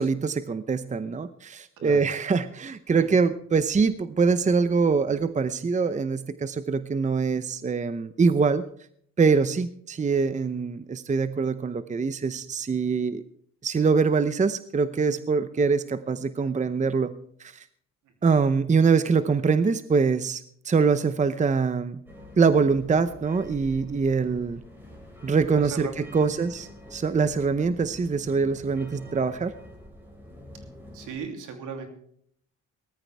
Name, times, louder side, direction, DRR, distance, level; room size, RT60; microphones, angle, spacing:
voice 1, 0.0-8.6 9.2-13.2 13.6-17.1 17.4-17.6 18.2-22.0 22.4-24.6 25.2-29.5, right 5 dB, 25° right, 13 dB, 0.7 m, -24 dB
sound 1, 22.1-31.2, left 1 dB, 5° right, 5.4 m, -46 dB
voice 2, 25.6-26.3 30.9-31.9, right 6 dB, 85° right, 4 dB, 3.1 m, -36 dB
18.5 x 14.0 x 3.4 m, 0.64 s
cardioid pair, 90°, 30 cm